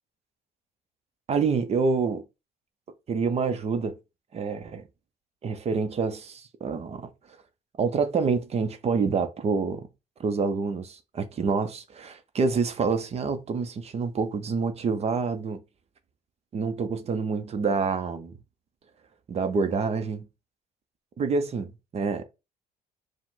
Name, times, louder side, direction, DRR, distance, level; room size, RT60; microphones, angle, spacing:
voice 1, 1.3-2.2 3.1-3.9 4.3-4.8 5.4-7.1 7.8-9.9 10.2-15.6 16.5-18.4 19.3-20.3 21.2-22.2, right 5 dB, 40° right, 0.7 m, -27 dB
4.8 x 2.2 x 3.8 m
cardioid pair, 110°, 17 cm